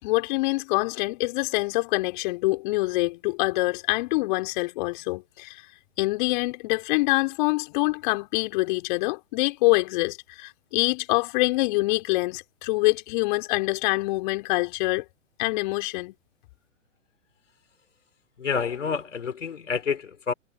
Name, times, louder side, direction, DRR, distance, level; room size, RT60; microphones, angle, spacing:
voice 1, 0.0-5.6 6.0-15.1 15.4-16.1, left 22 dB, 40° left, 3.8 m, -25 dB
voice 2, 18.4-20.3, left 6 dB, 70° left, 3.6 m, -28 dB
figure-of-eight pair, 120°, 38 cm